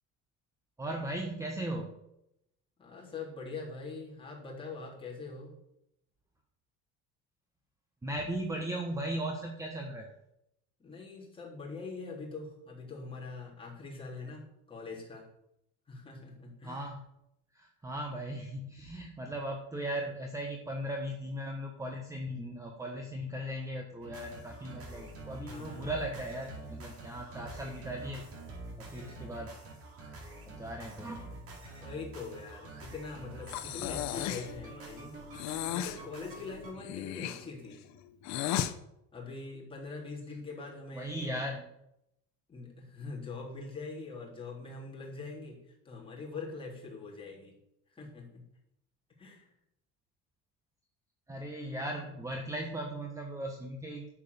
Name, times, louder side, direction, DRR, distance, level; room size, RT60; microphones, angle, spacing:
voice 1, 0.8-1.9 8.0-10.1 16.6-17.0 17.5-28.2 28.8-29.5 30.4-31.4 31.7-31.8 40.9-41.7 51.3-54.1, right 1 dB, 10° right, 2 dB, 1.2 m, -38 dB
voice 2, 2.8-5.5 10.8-15.3 15.9-16.8 25.4-25.9 31.8-35.2 35.7-37.8 39.1-41.4 42.5-47.5 47.9-48.4 49.2-49.5, left 4 dB, 15° left, -3 dB, 3.6 m, -43 dB
sound 1, 24.0-36.7, right 2 dB, 45° right, 4.2 m, -47 dB
Breathing, 33.5-34.5 35.3-36.0 36.8-38.7, left 11 dB, 60° left, 0.9 m, -35 dB
11.5 x 7.4 x 6.9 m, 0.82 s
cardioid pair, 155°, 31 cm